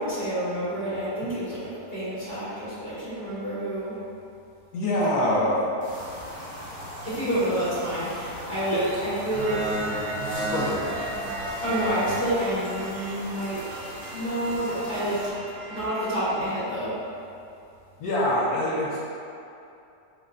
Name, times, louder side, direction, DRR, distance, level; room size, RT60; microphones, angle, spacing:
voice 1, 0.0-3.9 7.0-9.7 11.6-13.6 14.1-15.2 15.7-16.9, right 1 dB, 30° left, -12 dB, 1.2 m, -28 dB
voice 2, 4.7-5.6 8.7-8.8 10.5-10.7 18.0-19.0, left 1 dB, 70° left, -7 dB, 1.1 m, -24 dB
sound 1, 5.8-15.3, equal, 10° right, 0.4 m, -40 dB
sound 2, 9.3-16.6, right 1 dB, 70° right, 0.9 m, -33 dB
5.1 x 2.1 x 2.4 m, 2.7 s
omnidirectional pair, 1.8 m